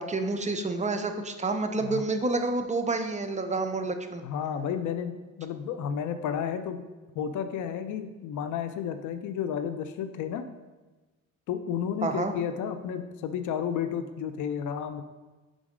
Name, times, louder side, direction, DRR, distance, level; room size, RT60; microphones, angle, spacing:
voice 1, 0.0-4.2 12.0-12.3, right 3 dB, 25° right, 6 dB, 0.5 m, -29 dB
voice 2, 4.2-6.8 7.1-10.4 11.5-15.0, left 8 dB, 75° left, 9 dB, 0.6 m, -32 dB
5.1 x 3.9 x 5.0 m, 1.2 s
cardioid pair, 90°, 30 cm